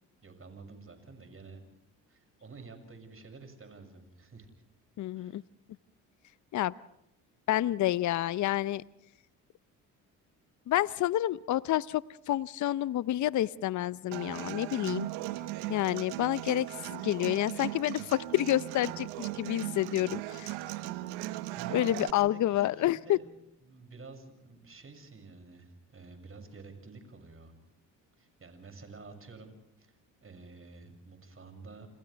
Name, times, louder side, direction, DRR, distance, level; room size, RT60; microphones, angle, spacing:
voice 1, 0.2-1.6 2.1-4.5 5.1-5.4 21.5-23.3 23.6-27.5 28.2-29.5 29.8-29.9 30.2-31.9, right 4 dB, 35° right, 6 dB, 6.8 m, -50 dB
voice 2, 5.0-5.4 6.5-6.7 7.5-8.8 10.7-15.1 15.7-20.6 21.7-23.2, left 13 dB, 50° left, 18 dB, 0.7 m, -29 dB
Human voice / Acoustic guitar, 14.1-22.1, right 16 dB, 80° right, 1.1 m, -38 dB
29.0 x 28.5 x 3.4 m, 0.79 s
hypercardioid pair, 60°, 38 cm